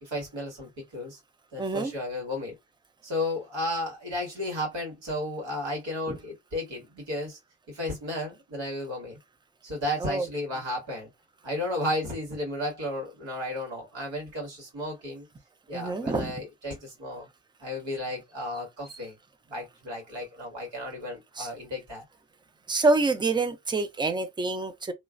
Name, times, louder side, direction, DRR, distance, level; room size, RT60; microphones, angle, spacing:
voice 1, 0.0-1.2 1.5-2.5 3.0-7.4 7.7-9.2 9.6-11.1 11.4-15.3 15.7-17.3 17.6-19.1 19.5-22.0, left 1 dB, 80° right, 1.9 m, -33 dB
voice 2, 1.6-1.9 6.1-6.2 10.0-10.3 15.7-16.3 21.4-21.5 22.7-24.9, right 3 dB, 10° right, 0.4 m, -26 dB
3.0 x 2.4 x 2.4 m
wide cardioid pair, 125°, 44 cm